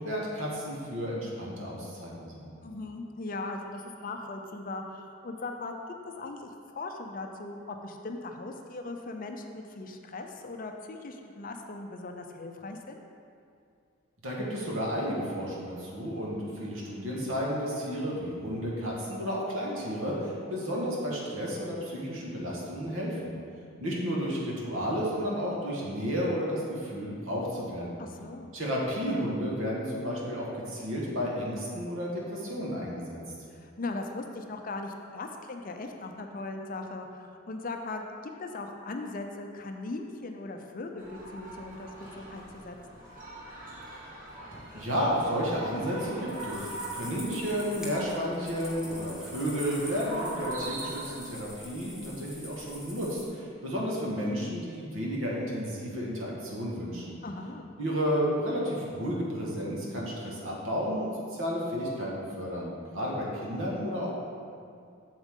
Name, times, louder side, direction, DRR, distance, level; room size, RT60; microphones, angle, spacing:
voice 1, 0.0-2.5 14.2-23.3 23.8-28.0 28.5-33.2 44.7-57.2 57.8-64.1, equal, 75° right, -4 dB, 1.7 m, -32 dB
voice 2, 2.6-13.0 28.0-28.5 33.5-42.8 57.2-57.7, left 2 dB, 40° left, 4 dB, 0.5 m, -39 dB
sound 1, 41.0-51.2, right 1 dB, 40° right, 1.8 m, -42 dB
sound 2, 46.1-53.3, left 1 dB, 5° right, 1.0 m, -45 dB
7.6 x 7.1 x 3.7 m, 2.3 s
head